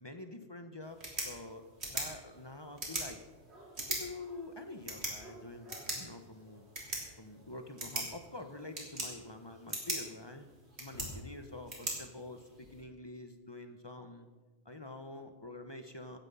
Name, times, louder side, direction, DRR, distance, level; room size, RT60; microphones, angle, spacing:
voice 1, 0.0-3.2 3.8-6.7 7.2-10.4 10.8-14.3 14.6-16.2, left 2 dB, 25° left, 7 dB, 1.0 m, -47 dB
sound 1, 0.8-12.8, right 1 dB, 75° right, 3.5 m, -42 dB
15.5 x 9.7 x 5.6 m, 1.2 s
omnidirectional pair, 1.1 m